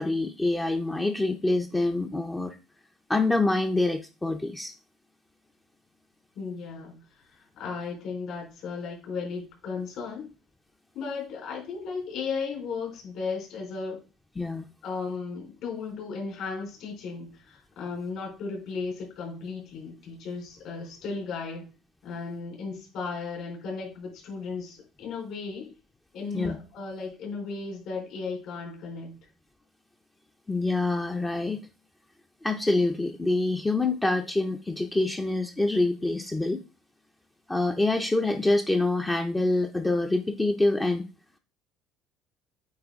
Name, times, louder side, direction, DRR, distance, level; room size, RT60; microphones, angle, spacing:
voice 1, 0.0-2.6 3.1-4.7 14.4-14.7 26.3-26.6 30.5-31.6 32.4-36.6 37.5-41.1, left 2 dB, 10° left, 5 dB, 0.5 m, -26 dB
voice 2, 6.4-7.0 7.3-10.3 10.9-14.0 14.8-21.7 22.0-25.7 26.1-29.2, left 4 dB, 60° left, 0 dB, 3.9 m, -35 dB
8.8 x 4.2 x 3.5 m, 0.32 s
cardioid pair, 145°, 0 cm